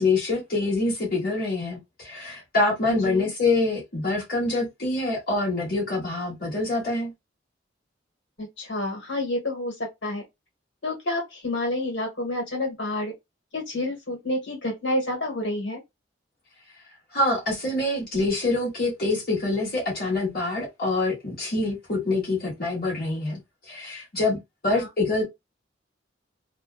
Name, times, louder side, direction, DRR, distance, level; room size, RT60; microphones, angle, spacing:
voice 1, 0.0-7.1 17.1-23.4 23.7-25.2, left 2 dB, 50° left, 1.2 m, -25 dB
voice 2, 2.9-3.3 8.4-9.7 10.0-10.2 10.8-13.1 13.5-15.8 24.7-24.9, left 1 dB, 70° left, 1.5 m, -29 dB
2.6 x 2.2 x 2.3 m
head